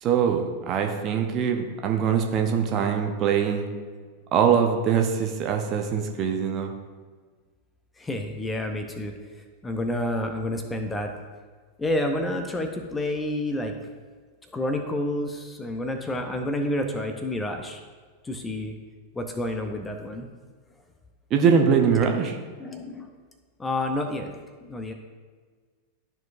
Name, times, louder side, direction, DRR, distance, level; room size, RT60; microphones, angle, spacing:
voice 1, 0.0-3.6 4.3-6.7 21.3-22.4, right 7 dB, 35° right, 4 dB, 0.8 m, -23 dB
voice 2, 8.0-9.1 9.6-11.1 11.8-13.7 14.5-17.8 18.2-18.8 19.1-20.3 22.6-23.1 23.6-24.3 24.6-24.9, left 1 dB, 15° left, 5 dB, 0.7 m, -29 dB
12.5 x 4.5 x 2.6 m, 1.5 s
figure-of-eight pair, 90°, 0 cm